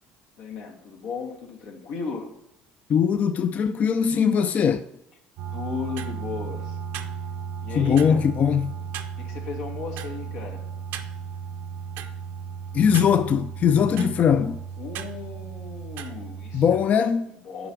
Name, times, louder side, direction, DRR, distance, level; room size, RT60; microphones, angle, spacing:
voice 1, 0.4-2.3 5.5-6.8 7.6-8.2 9.2-10.6 14.8-16.6 17.0-17.1 17.4-17.7, left 5 dB, 85° left, 1.5 m, -35 dB
voice 2, 2.9-4.8 7.7-8.7 12.7-14.6 16.5-17.3, left 7 dB, 40° left, 0.3 m, -21 dB
sound 1, 5.4-16.8, right 7 dB, 75° right, 0.6 m, -35 dB
7.9 x 5.0 x 4.8 m
cardioid pair, 105°, 4 cm